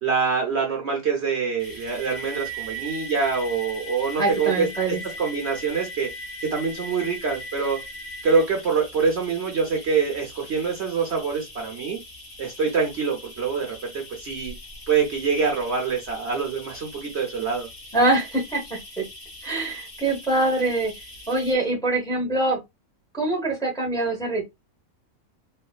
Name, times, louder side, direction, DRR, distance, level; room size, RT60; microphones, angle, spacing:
voice 1, 0.0-4.7 5.2-6.1 6.4-7.8 8.2-12.0 12.4-14.5 14.9-17.7, right 5 dB, 55° right, 1.0 m, -25 dB
sound 1, 1.6-21.5, equal, 35° left, 2.1 m, -40 dB
voice 2, 4.2-5.0 17.9-19.0 19.4-20.9 21.3-22.6 23.1-24.4, right 2 dB, 5° left, 1.0 m, -24 dB
4.3 x 2.6 x 2.3 m
omnidirectional pair, 1.5 m